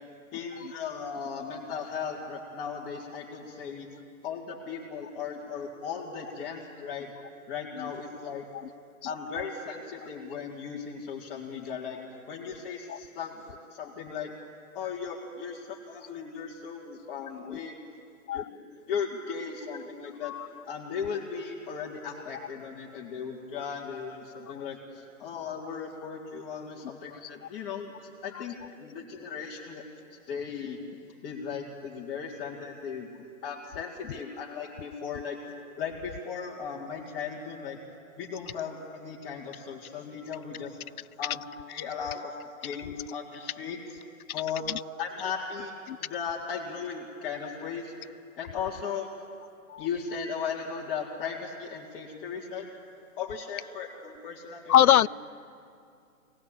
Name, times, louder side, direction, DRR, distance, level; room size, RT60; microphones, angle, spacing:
voice 1, 0.3-3.9 4.2-7.1 7.5-8.4 9.0-12.0 12.3-14.3 14.7-17.8 18.3-18.5 18.9-20.4 20.7-27.9 28.2-29.8 30.1-30.8 31.2-33.1 33.4-35.4 35.8-37.8 38.2-40.8 41.2-41.4 41.7-42.4 42.6-44.0 44.3-44.7 45.0-45.7 46.0-47.9 48.4-49.1 49.8-52.7 53.2-55.1, left 6 dB, 20° left, -6 dB, 2.2 m, -37 dB
voice 2, 54.7-55.1, left 11 dB, 80° left, 22 dB, 0.5 m, -23 dB
23.5 x 18.5 x 8.7 m, 2.5 s
hypercardioid pair, 155°, 43 cm